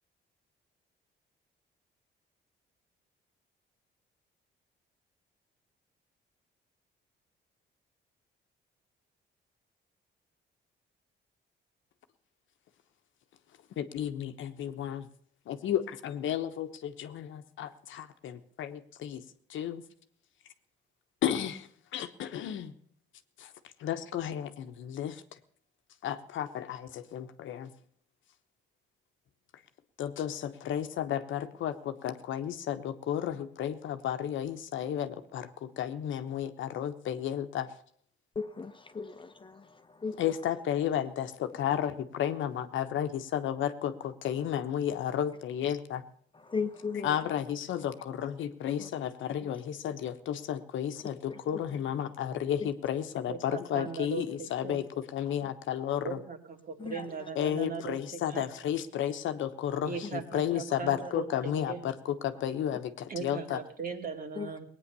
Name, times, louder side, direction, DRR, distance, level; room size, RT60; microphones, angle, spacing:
voice 1, 13.8-15.1 15.5-19.2 19.5-19.8 21.2-21.7 21.9-22.7 23.4-23.5 23.8-25.2 26.0-27.7 30.0-37.7 40.2-46.0 46.9-54.8 55.1-56.2 57.4-61.9 62.2-63.6, left 10 dB, 75° left, 1.1 m, -33 dB
voice 2, 38.3-40.3 46.3-47.3 48.8-48.9 49.4-49.5 51.0-51.6 52.6-52.7 55.4-55.5 56.8-57.3 60.0-60.1 64.4-64.5, left 5 dB, 25° left, 1.0 m, -38 dB
voice 3, 53.3-54.8 56.0-58.5 59.9-61.9 63.1-64.6, right 5 dB, 45° right, 2.4 m, -39 dB
18.5 x 9.4 x 6.8 m
cardioid pair, 90°, 20 cm